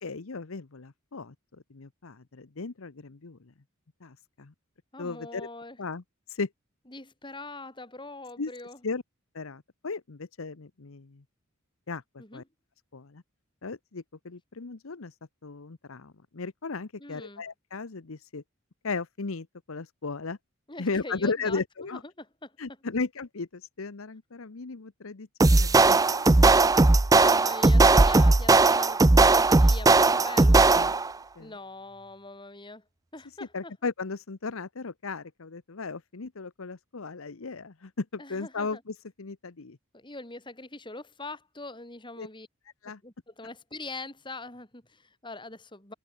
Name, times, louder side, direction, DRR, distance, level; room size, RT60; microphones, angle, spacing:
voice 1, 0.0-3.5 4.0-4.5 5.0-5.5 5.8-6.0 6.3-6.5 8.4-8.5 8.8-9.0 9.3-11.2 11.9-12.4 12.9-13.2 13.6-15.1 15.4-18.4 18.8-20.4 20.8-22.0 22.6-26.5 30.7-30.9 31.4-31.5 33.5-39.8 42.2-42.3 42.8-43.0, left 4 dB, 75° left, 0.9 m, -36 dB
voice 2, 4.9-5.8 6.9-8.8 12.2-12.4 17.0-17.4 20.7-21.6 21.9-22.5 26.0-30.7 31.4-32.8 33.1-33.7 38.2-38.8 39.9-42.5 43.0-45.9, left 2 dB, 20° left, 4.6 m, -43 dB
sound 1, 25.4-31.1, right 3 dB, 15° right, 0.4 m, -18 dB
head